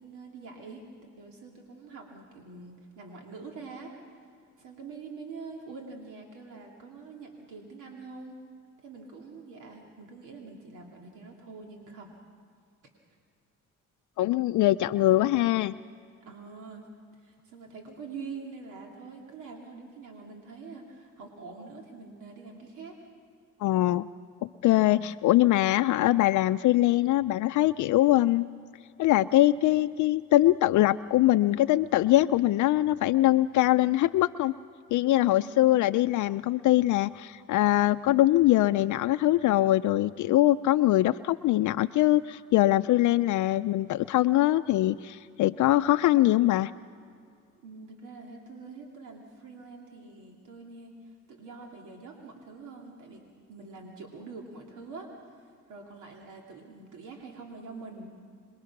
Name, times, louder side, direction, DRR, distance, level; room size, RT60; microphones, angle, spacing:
voice 1, 0.0-3.9 4.6-8.4 8.8-12.1 16.3-16.8 17.2-23.0 25.7-25.8 35.4-35.8 47.6-53.2 53.5-55.1 55.7-58.1, right 4 dB, 90° right, 0 dB, 2.7 m, -45 dB
voice 2, 14.2-15.7 23.6-24.1 24.4-28.5 29.0-34.5 34.9-46.7, left 15 dB, 75° left, 9 dB, 0.5 m, -23 dB
27.0 x 21.5 x 5.9 m, 2.3 s
cardioid pair, 90°, 30 cm